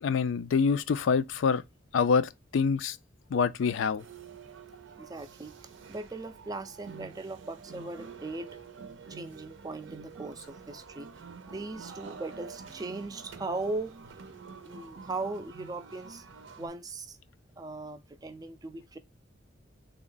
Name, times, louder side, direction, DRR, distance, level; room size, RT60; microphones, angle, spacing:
voice 1, 0.0-1.6 1.9-3.0 3.3-4.0, left 5 dB, 80° left, 0.4 m, -26 dB
sound 1, 4.0-16.7, right 5 dB, 75° right, 0.5 m, -48 dB
voice 2, 5.0-8.6 9.1-14.3 14.6-16.2 16.6-17.2 17.6-19.0, right 2 dB, 20° right, 0.3 m, -39 dB
3.5 x 2.1 x 3.7 m
head